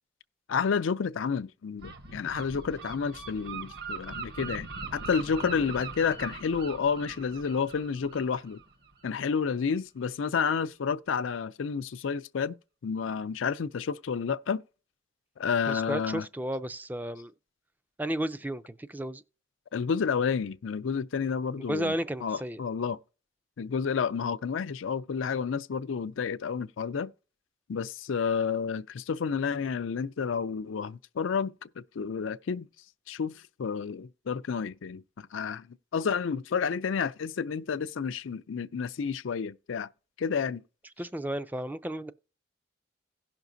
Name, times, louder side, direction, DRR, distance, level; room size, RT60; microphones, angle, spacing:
voice 1, 0.5-8.6 9.0-12.5 12.8-14.6 15.4-16.3 19.7-21.9 22.2-23.0 23.6-27.1 27.7-32.7 33.1-35.7 35.9-39.9 40.2-40.6, left 6 dB, 90° left, 0.4 m, -30 dB
Gull seagull, 1.8-9.3, right 4 dB, 55° right, 1.0 m, -41 dB
voice 2, 15.7-17.3 18.0-19.2 21.7-22.6 41.0-42.1, right 1 dB, 10° right, 0.3 m, -33 dB
17.0 x 5.9 x 2.6 m
head